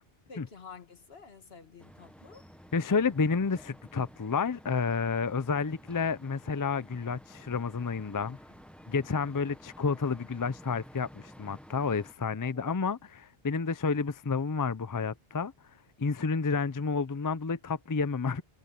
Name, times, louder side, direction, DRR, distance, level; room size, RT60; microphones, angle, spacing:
voice 1, 0.3-2.4 9.2-9.4 12.4-12.7, left 5 dB, 75° left, 1.8 m, -50 dB
sound 1, 1.8-12.1, equal, ahead, 1.0 m, -53 dB
voice 2, 2.7-8.4 8.9-15.5 16.0-18.4, left 5 dB, 30° left, 0.4 m, -30 dB
omnidirectional pair, 1.0 m